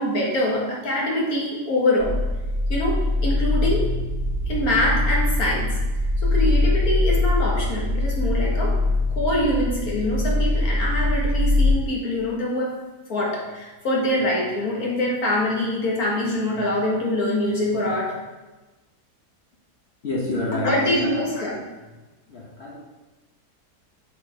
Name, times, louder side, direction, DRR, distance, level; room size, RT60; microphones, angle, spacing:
voice 1, 0.0-2.2 2.7-3.9 4.5-5.8 6.2-8.8 9.2-12.7 13.1-18.2 20.5-21.6, left 1 dB, 65° left, -2 dB, 2.0 m, -24 dB
sound 1, 2.0-11.7, left 2 dB, 70° right, 2.2 m, -22 dB
voice 2, 20.0-21.3 22.3-22.8, left 2 dB, 45° left, -3 dB, 1.1 m, -29 dB
8.1 x 5.8 x 3.5 m, 1.2 s
omnidirectional pair, 1.7 m